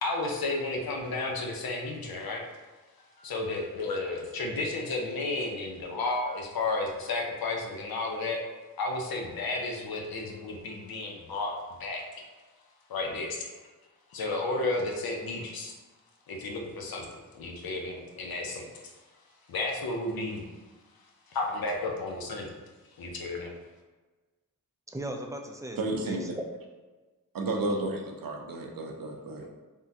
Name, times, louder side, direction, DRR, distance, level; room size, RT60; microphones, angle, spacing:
voice 1, 0.0-2.4 3.2-8.4 8.8-11.5 11.8-12.0 12.9-13.5 14.1-15.7 16.3-18.9 19.5-20.5 21.3-22.5 23.0-23.5, left 2 dB, 85° left, 1 dB, 0.6 m, -32 dB
voice 2, 24.9-25.8 26.1-26.4 27.5-27.7, right 1 dB, 10° right, 2 dB, 0.3 m, -38 dB
voice 3, 25.8-26.3 27.3-29.5, right 2 dB, 70° right, 1 dB, 0.6 m, -32 dB
3.5 x 2.2 x 2.6 m, 1.3 s
cardioid pair, 55°, 35 cm